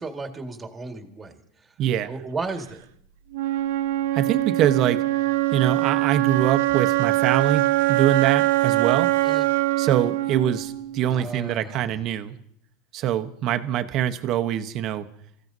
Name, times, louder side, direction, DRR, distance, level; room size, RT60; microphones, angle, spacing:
voice 1, 0.0-1.4 2.1-2.9 9.2-9.5 11.1-11.9, right 3 dB, 15° right, 5 dB, 1.8 m, -34 dB
voice 2, 1.8-2.1 4.1-5.0 5.5-9.1 9.8-12.4 12.9-15.1, right 11 dB, 50° right, 9 dB, 0.9 m, -24 dB
Wind instrument woodwind instrument, 3.3-11.3, right 17 dB, 80° right, 0.6 m, -23 dB
28.0 x 15.0 x 2.7 m, 0.68 s
supercardioid pair, 120°, 0 cm